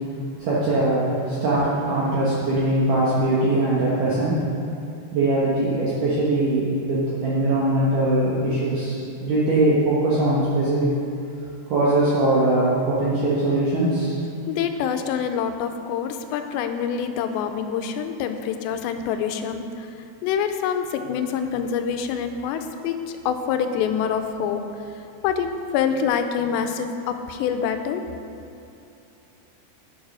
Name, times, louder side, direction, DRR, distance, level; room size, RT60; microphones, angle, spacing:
voice 1, 0.4-4.3 5.1-10.9 11.7-14.2, right 2 dB, 65° right, -7 dB, 2.3 m, -21 dB
voice 2, 14.5-19.9 20.2-24.6 25.2-25.5 25.7-28.0, left 7 dB, 90° left, 7 dB, 2.8 m, -26 dB
9.4 x 7.3 x 6.1 m, 2.7 s
omnidirectional pair, 5.0 m